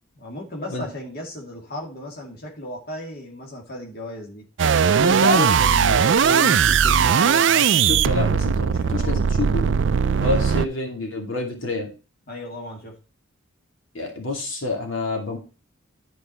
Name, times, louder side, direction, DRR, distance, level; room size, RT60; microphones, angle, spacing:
voice 1, 0.2-4.4 8.7-9.2 12.3-13.0, left 1 dB, 50° left, 0 dB, 2.4 m, -36 dB
sound 1, 4.6-10.6, right 7 dB, 60° right, 0.4 m, -19 dB
voice 2, 5.0-9.8 10.2-11.9 13.9-15.4, left 2 dB, 70° left, 2 dB, 2.6 m, -28 dB
11.5 x 5.0 x 4.4 m, 0.33 s
head